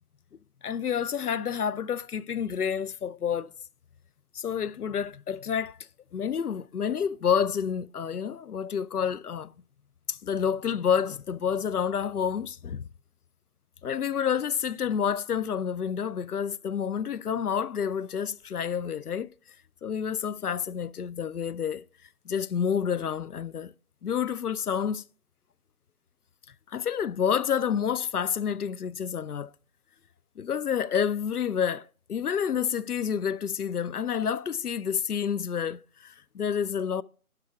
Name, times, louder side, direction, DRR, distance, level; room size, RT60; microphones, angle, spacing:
voice 1, 0.6-3.5 4.3-5.8 6.1-9.5 10.1-12.9 13.8-19.3 19.8-21.8 22.3-23.7 24.0-25.0 26.7-29.5 30.4-37.0, left 7 dB, 85° left, 0.6 m, -29 dB
11.5 x 6.0 x 3.5 m
figure-of-eight pair, 160°, 45 cm